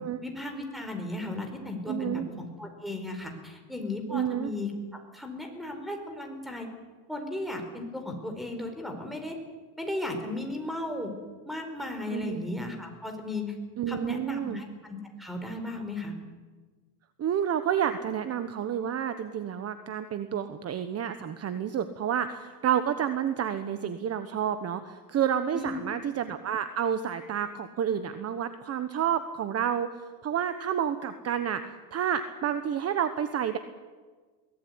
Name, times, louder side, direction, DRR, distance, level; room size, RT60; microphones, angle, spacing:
voice 1, 0.2-4.7 5.1-6.7 7.1-9.4 9.8-11.1 11.4-13.5 13.9-16.1 25.5-25.8, left 2 dB, ahead, 5 dB, 4.5 m, -35 dB
voice 2, 1.9-2.3 4.1-4.5 12.1-12.4 13.8-14.6 17.2-29.9 30.2-31.6 31.9-33.6, right 9 dB, 30° right, 10 dB, 1.2 m, -29 dB
23.0 x 18.5 x 9.6 m, 1.4 s
cardioid pair, 140°, 46 cm